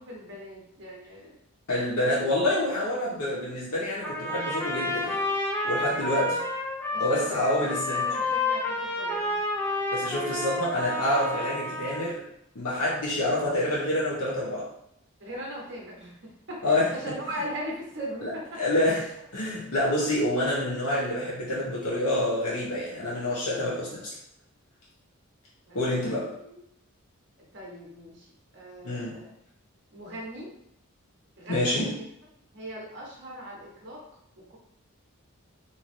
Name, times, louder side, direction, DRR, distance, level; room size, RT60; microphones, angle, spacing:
voice 1, 0.0-1.3 6.9-9.4 10.0-10.4 11.3-11.8 15.2-16.1 16.5-18.9 25.7-26.0 26.4-26.6 27.5-28.3 28.5-29.3 29.9-30.5 31.4-32.0 32.5-34.0 34.4-34.6, equal, 50° right, -2 dB, 0.9 m, -40 dB
voice 2, 1.7-5.2 5.6-6.4 7.0-8.1 9.9-12.2 12.5-14.7 16.6-16.9 18.2-24.1 25.7-26.3 28.8-29.2 31.5-32.0, left 1 dB, 85° left, -6 dB, 0.8 m, -27 dB
Trumpet, 4.0-12.1, left 2 dB, 10° left, 0.4 m, -30 dB
3.0 x 2.7 x 2.5 m, 0.74 s
head